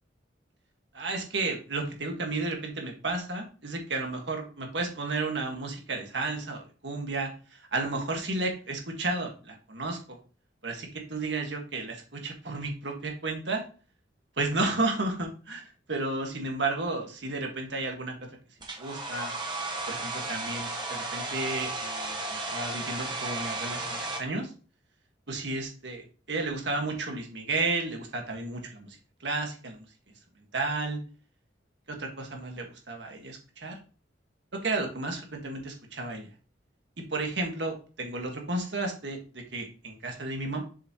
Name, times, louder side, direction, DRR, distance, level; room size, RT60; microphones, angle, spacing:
voice 1, 0.9-10.2 10.6-13.6 14.4-18.3 18.8-19.3 19.9-24.5 25.3-29.8 30.5-31.0 31.9-33.8 34.5-36.3 37.1-40.6, right 3 dB, 70° right, 2 dB, 1.7 m, -33 dB
Domestic sounds home sounds, 18.6-24.2, right 2 dB, 25° right, 1.1 m, -34 dB
7.2 x 5.5 x 3.0 m, 0.37 s
head